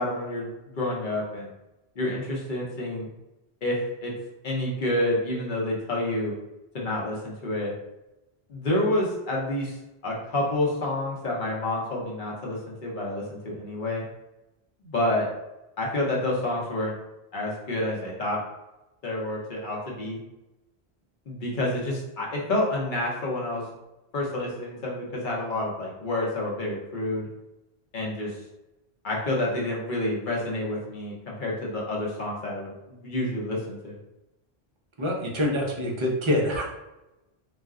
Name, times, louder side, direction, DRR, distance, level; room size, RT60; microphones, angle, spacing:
voice 1, 0.0-1.5 2.0-3.1 3.6-4.1 4.4-6.3 6.7-7.7 8.5-9.8 10.0-14.0 14.8-15.3 15.8-16.9 17.3-18.4 19.0-20.2 21.3-23.6 24.1-27.3 27.9-28.4 29.0-32.7 33.0-34.0, left 1 dB, 55° left, -3 dB, 0.8 m, -28 dB
voice 2, 35.0-36.6, left 1 dB, 40° right, -1 dB, 0.4 m, -25 dB
2.4 x 2.1 x 3.5 m, 0.95 s
omnidirectional pair, 1.1 m